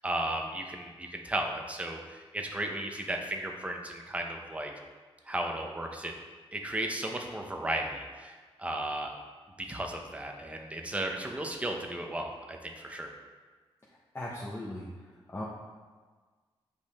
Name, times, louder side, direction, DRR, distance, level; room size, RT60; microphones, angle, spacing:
voice 1, 0.0-4.7 5.3-6.1 6.5-9.1 9.6-13.1, right 1 dB, 15° right, 2 dB, 0.8 m, -35 dB
voice 2, 14.1-14.9 15.3-15.4, left 1 dB, 25° left, -6 dB, 1.1 m, -37 dB
8.2 x 5.3 x 3.5 m, 1.4 s
wide cardioid pair, 105°, 10 cm